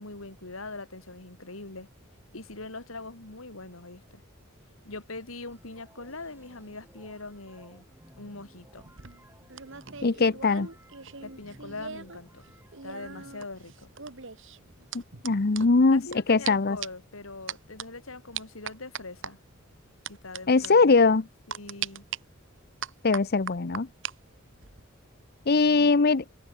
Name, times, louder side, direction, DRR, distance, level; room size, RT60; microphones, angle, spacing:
voice 1, 0.0-1.9 2.3-4.2 4.9-7.9 8.2-8.8 11.2-12.4 12.8-13.9 15.9-19.4 20.1-21.2 21.5-22.1 25.6-26.2, left 3 dB, 90° left, 3.7 m, -42 dB
sound 1, 5.5-13.3, right 1 dB, 10° right, 7.9 m, -57 dB
sound 2, 8.8-12.2 12.4-16.2 16.4-16.5 16.8-17.1 17.5-17.8 18.3-19.3 20.0-20.4 20.6-20.7 21.5-22.2 22.8-24.1 24.5-24.8, right 8 dB, 65° right, 2.6 m, -39 dB
voice 2, 10.0-10.7 15.2-16.0 16.3-16.8 20.5-21.2 23.0-23.9 25.5-26.2, left 4 dB, 50° left, 0.8 m, -21 dB
head